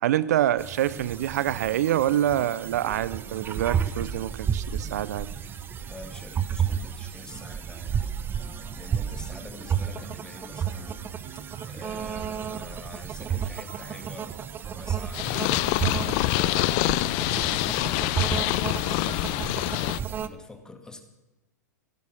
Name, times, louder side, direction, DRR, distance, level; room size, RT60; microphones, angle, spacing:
voice 1, 0.0-5.3, right 12 dB, 65° right, 18 dB, 0.5 m, -26 dB
sound 1, 0.6-20.3, right 8 dB, 20° right, 0.8 m, -32 dB
sound 2, 0.9-15.4, right 5 dB, 40° right, 5.9 m, -52 dB
voice 2, 5.8-8.1 8.7-10.9 11.7-14.3 14.7-15.3 15.8-17.3 17.8-21.0, left 3 dB, 5° left, 7 dB, 2.1 m, -45 dB
Purr, 15.1-20.0, left 19 dB, 45° left, 0.5 m, -25 dB
17.0 x 12.0 x 6.4 m, 1.1 s
hypercardioid pair, 110°, 9 cm